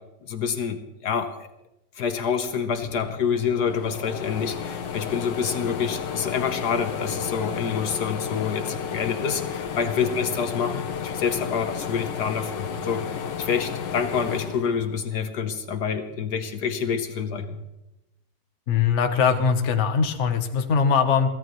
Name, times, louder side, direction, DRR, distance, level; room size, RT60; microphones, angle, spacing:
voice 1, 0.2-1.5 2.0-17.6, left 6 dB, 70° left, 8 dB, 1.5 m, -27 dB
sound 1, 2.8-15.4 15.9-17.0, left 7 dB, 90° left, 1.7 m, -32 dB
voice 2, 18.7-21.3, left 6 dB, 45° left, 6 dB, 1.3 m, -21 dB
23.0 x 16.0 x 3.2 m, 0.93 s
omnidirectional pair, 1.9 m